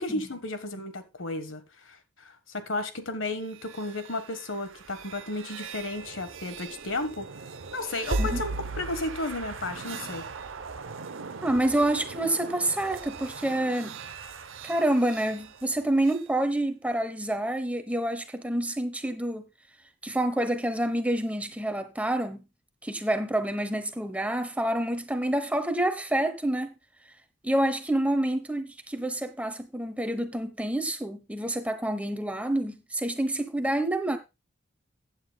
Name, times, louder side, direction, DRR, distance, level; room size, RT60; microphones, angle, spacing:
voice 1, 0.0-7.3 7.7-10.3, left 2 dB, 90° left, 1.4 m, -33 dB
sound 1, 3.4-16.3, right 3 dB, 90° right, 0.7 m, -38 dB
voice 2, 11.4-14.0 14.6-19.5 20.0-22.4 22.8-26.7 27.4-34.2, right 1 dB, 5° right, 1.0 m, -28 dB
15.0 x 9.0 x 2.3 m
head